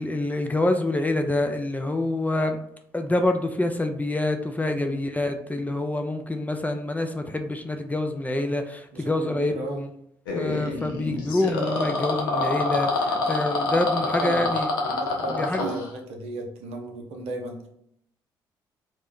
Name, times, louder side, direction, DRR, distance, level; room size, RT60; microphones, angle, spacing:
voice 1, 0.0-2.6 2.9-9.9 10.4-14.7 15.3-15.7, left 2 dB, 15° left, 5 dB, 0.4 m, -26 dB
voice 2, 4.6-5.1 8.9-9.9 13.7-14.5 14.9-17.7, right 3 dB, 65° right, 2 dB, 0.6 m, -36 dB
sound 1, 10.3-15.9, left 3 dB, 85° left, 0.5 m, -27 dB
2.5 x 2.0 x 3.6 m, 0.72 s
hypercardioid pair, 45°, 11 cm